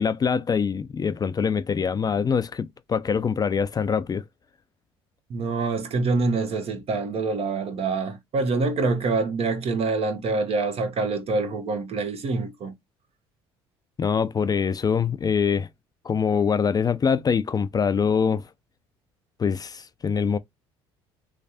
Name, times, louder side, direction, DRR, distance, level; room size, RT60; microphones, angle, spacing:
voice 1, 0.0-4.2 14.0-15.7 16.0-18.4 19.4-20.4, left 6 dB, 30° left, 0.4 m, -24 dB
voice 2, 5.3-12.7, right 3 dB, 50° right, 1.0 m, -26 dB
3.2 x 3.2 x 2.8 m
hypercardioid pair, 65°, 13 cm